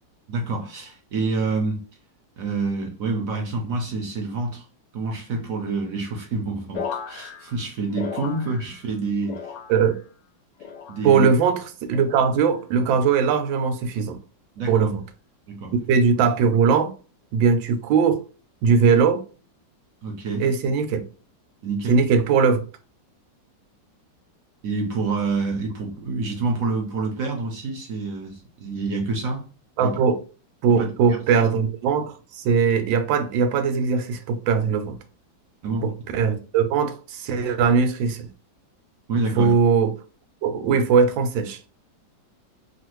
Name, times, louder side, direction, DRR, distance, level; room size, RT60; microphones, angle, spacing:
voice 1, 0.3-1.8 2.4-4.7 4.9-9.5 10.9-11.3 14.6-14.9 15.5-15.7 20.0-20.5 21.6-22.0 24.6-29.4 29.8-30.0 30.8-31.2 35.6-35.9 39.1-39.5, right 3 dB, 60° right, 0.9 m, -27 dB
sound 1, 6.7-9.0 9.2-10.1 10.6-11.3 11.9-12.4 13.2-13.6 14.6-14.9, left 7 dB, 70° left, 1.1 m, -37 dB
voice 2, 11.0-14.2 14.7-15.0 15.7-16.9 17.3-18.2 18.6-19.2 20.4-21.0 21.9-22.6 29.8-30.2 30.6-35.0 36.1-38.3 39.4-39.9 40.4-41.6, right 6 dB, 90° right, 1.3 m, -20 dB
3.1 x 2.4 x 3.0 m
omnidirectional pair, 2.0 m